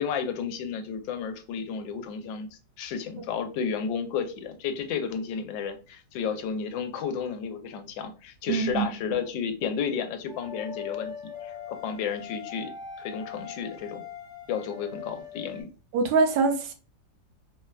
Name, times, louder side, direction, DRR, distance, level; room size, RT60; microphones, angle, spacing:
voice 1, 0.0-11.1 11.4-12.7 13.0-14.0 14.5-15.7, left 6 dB, 80° left, 1.3 m, -32 dB
voice 2, 8.5-8.9 15.9-16.7, right 4 dB, 85° right, 1.3 m, -24 dB
sound 1, 10.3-15.6, left 8 dB, 5° right, 0.4 m, -40 dB
4.0 x 2.2 x 2.2 m
omnidirectional pair, 2.0 m